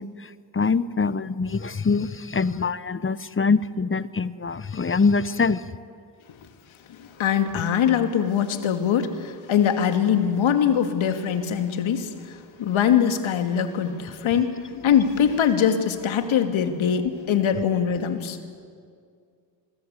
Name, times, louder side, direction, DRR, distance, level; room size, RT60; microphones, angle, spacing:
voice 1, 0.0-5.6, left 4 dB, 25° left, 16 dB, 1.1 m, -24 dB
voice 2, 6.9-18.4, left 8 dB, 65° left, 7 dB, 2.4 m, -22 dB
27.0 x 21.5 x 8.3 m, 2.2 s
hypercardioid pair, 50°, 50 cm